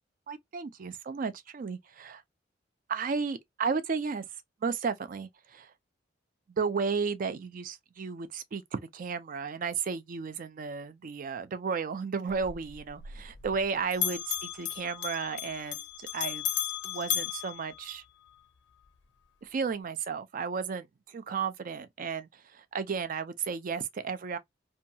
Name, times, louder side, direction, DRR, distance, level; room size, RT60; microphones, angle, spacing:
voice 1, 0.3-2.2 2.9-4.3 4.6-5.7 6.5-16.4 16.8-18.0 19.4-24.4, right 5 dB, 45° right, 0.4 m, -33 dB
Bell, 12.3-13.7 13.9-18.4, left 11 dB, 65° left, 0.4 m, -35 dB
2.7 x 2.3 x 2.6 m
head